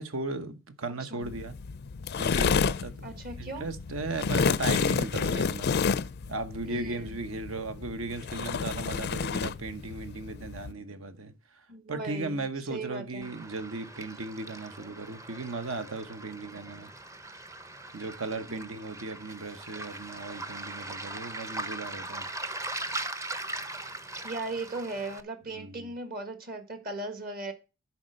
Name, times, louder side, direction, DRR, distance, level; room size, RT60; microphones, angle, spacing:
voice 1, 0.0-1.5 2.2-5.7 6.3-16.9 17.9-22.3 25.5-25.9, right 3 dB, 70° right, 1.1 m, -37 dB
sound 1, 1.2-10.7, left 5 dB, 50° left, 0.4 m, -30 dB
voice 2, 3.0-3.6 6.6-7.1 11.7-12.4 12.7-13.3 18.5-18.7 24.2-27.5, right 2 dB, 45° right, 1.7 m, -37 dB
Waves surf, 13.2-25.2, right 2 dB, 15° right, 0.6 m, -40 dB
10.5 x 4.3 x 6.5 m
head